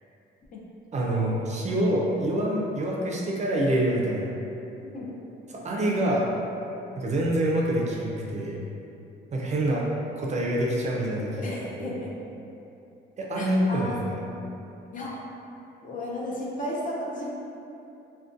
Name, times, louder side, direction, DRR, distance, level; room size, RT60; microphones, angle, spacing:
voice 1, 0.9-4.3 5.5-6.2 7.0-8.6 9.3-9.9 10.2-11.9 13.2-14.2, right 1 dB, 35° right, -3 dB, 0.4 m, -26 dB
voice 2, 11.4-12.1 13.3-14.3 14.9-15.2 15.8-17.4, left 1 dB, 40° left, -4 dB, 0.5 m, -34 dB
2.4 x 2.2 x 2.4 m, 2.8 s
cardioid pair, 90°, 20 cm